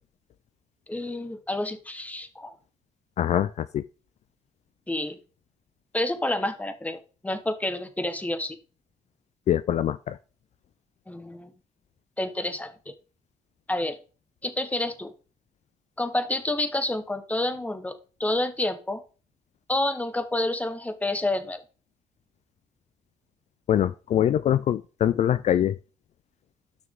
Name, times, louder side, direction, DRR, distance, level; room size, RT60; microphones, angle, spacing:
voice 1, 0.9-2.5 4.9-5.2 5.9-8.6 11.1-11.5 12.2-12.7 13.7-14.0 14.4-15.1 16.0-17.9 18.2-19.0 19.7-21.6, left 1 dB, 10° left, 1.2 m, -29 dB
voice 2, 3.2-3.8 9.5-10.2 23.7-25.7, left 10 dB, 60° left, 0.4 m, -23 dB
9.4 x 6.1 x 3.7 m
cardioid pair, 85°, 13 cm